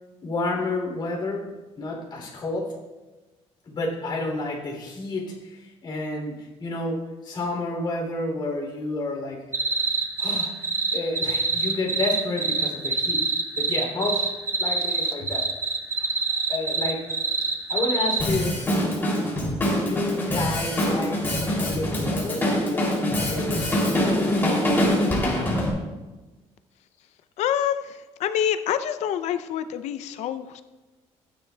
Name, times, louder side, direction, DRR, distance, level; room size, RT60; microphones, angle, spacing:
voice 1, 0.2-1.5 1.8-2.8 3.7-9.6 10.2-10.7 10.9-13.3 13.6-14.3 14.6-15.5 16.0-16.1 16.5-17.1 17.7-18.6 19.1-19.4 19.8-24.4, left 2 dB, 40° left, 0 dB, 2.9 m, -30 dB
sound 1, 9.5-18.2, right 4 dB, 20° right, 0.9 m, -25 dB
Drum kit, 18.2-25.7, left 1 dB, 20° left, 2.8 m, -24 dB
voice 2, 27.4-30.6, left 10 dB, 75° left, 11 dB, 0.5 m, -27 dB
15.0 x 9.9 x 2.3 m, 1.2 s
cardioid pair, 140°, 12 cm